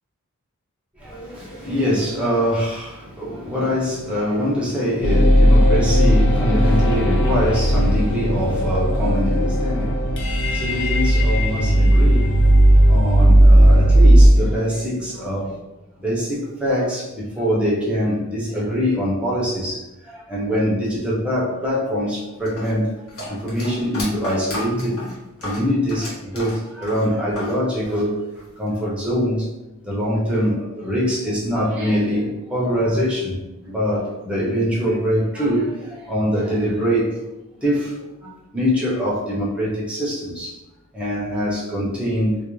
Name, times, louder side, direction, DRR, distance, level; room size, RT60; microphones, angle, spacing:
voice 1, 0.9-15.6 16.0-22.9 23.3-29.5 29.8-33.4 33.7-37.1 37.6-40.6 40.9-42.4, equal, 5° right, -6 dB, 0.5 m, -23 dB
sound 1, 5.0-14.3, equal, 55° left, 0.4 m, -15 dB
sound 2, 22.5-27.6 27.8-28.7, left 1 dB, 75° left, 0.9 m, -33 dB
2.4 x 2.0 x 3.0 m, 0.98 s
head